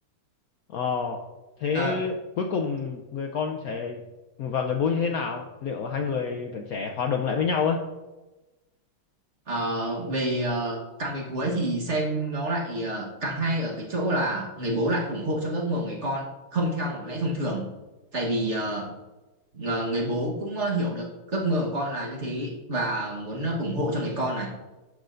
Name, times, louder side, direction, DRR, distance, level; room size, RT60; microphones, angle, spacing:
voice 1, 0.7-1.2 1.6-4.0 4.4-7.8, left 5 dB, 90° left, 3 dB, 0.8 m, -28 dB
voice 2, 1.7-2.0 9.5-17.7 18.1-18.9 19.5-24.5, right 1 dB, 40° right, -2 dB, 1.3 m, -28 dB
12.0 x 6.2 x 2.6 m, 1.1 s
omnidirectional pair, 2.3 m